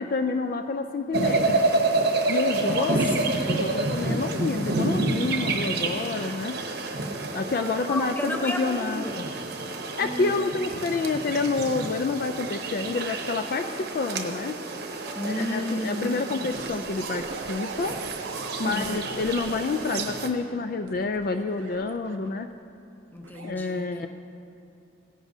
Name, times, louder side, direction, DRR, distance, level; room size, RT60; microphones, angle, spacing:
voice 1, 0.0-1.6 2.3-6.6 7.3-9.3 10.0-14.5 15.2-18.0 18.6-22.5 23.4-24.1, left 3 dB, 45° left, 7 dB, 0.3 m, -28 dB
sound 1, 1.1-20.3, right 2 dB, 55° right, 0.9 m, -29 dB
voice 2, 7.9-9.3 10.0-10.3 15.2-16.6 18.6-19.0 23.1-24.1, left 1 dB, 10° left, 3 dB, 0.7 m, -33 dB
sound 2, 16.5-19.8 20.9-22.5 23.2-23.5, right 4 dB, 80° right, 0.6 m, -41 dB
17.5 x 11.0 x 2.7 m, 2.6 s
head